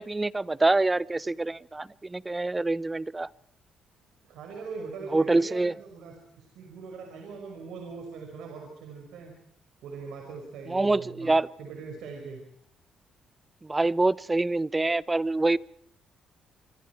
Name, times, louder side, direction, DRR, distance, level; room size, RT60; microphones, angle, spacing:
voice 1, 0.0-3.3 5.1-5.7 10.7-11.5 13.6-15.6, right 2 dB, 20° right, 20 dB, 0.8 m, -25 dB
voice 2, 4.3-9.3 9.8-12.4, right 4 dB, 85° right, 3 dB, 5.4 m, -41 dB
27.0 x 24.5 x 4.6 m, 0.67 s
cardioid pair, 90°, 0 cm